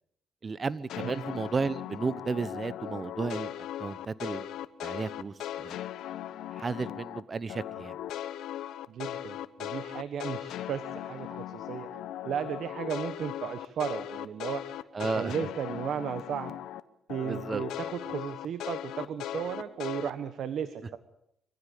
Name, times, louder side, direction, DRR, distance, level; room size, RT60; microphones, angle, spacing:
voice 1, 0.4-4.5 4.8-5.8 6.6-8.0 14.9-15.3 17.2-17.6, right 4 dB, 35° right, 17 dB, 1.0 m, -33 dB
sound 1, 0.9-7.2 7.5-16.8 17.1-20.1, left 12 dB, 85° left, 0.9 m, -38 dB
voice 2, 8.9-11.9 12.2-14.6 15.1-16.5 17.1-21.0, right 8 dB, 70° right, 12 dB, 1.3 m, -35 dB
24.5 x 15.5 x 8.5 m, 0.77 s
cardioid pair, 90°, 0 cm